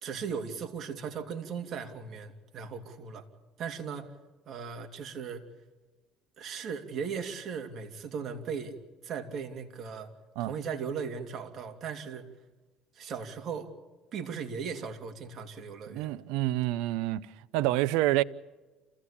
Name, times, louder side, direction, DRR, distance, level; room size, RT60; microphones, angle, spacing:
voice 1, 0.0-3.2 3.6-4.1 4.4-5.4 6.4-8.8 9.0-10.1 10.4-12.3 12.9-13.7 14.1-16.1, right 6 dB, 45° right, 3.0 m, -37 dB
voice 2, 15.9-17.3 17.5-18.2, right 16 dB, 85° right, 0.7 m, -27 dB
28.0 x 16.5 x 8.6 m
cardioid pair, 125°, 0 cm